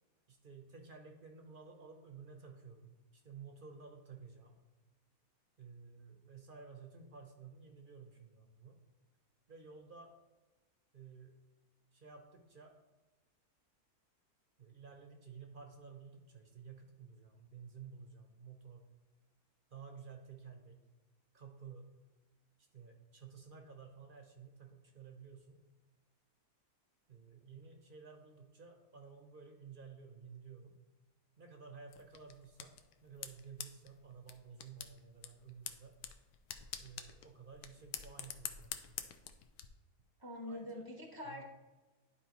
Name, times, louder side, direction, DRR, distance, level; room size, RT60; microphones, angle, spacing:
voice 1, 0.3-4.6 5.6-8.8 9.5-10.1 10.9-11.4 11.9-12.7 14.6-18.8 19.7-20.8 21.3-21.9 22.7-25.6 27.1-30.8 31.4-32.7 33.0-35.9 36.8-39.1 40.5-40.9 41.2-41.4, right 5 dB, 45° right, 3 dB, 0.8 m, -53 dB
sound 1, 31.9-39.7, left 9 dB, 80° left, 1.1 m, -48 dB
voice 2, 40.2-41.4, left 1 dB, 20° left, 0 dB, 0.6 m, -45 dB
11.5 x 4.3 x 3.0 m, 1.2 s
omnidirectional pair, 1.6 m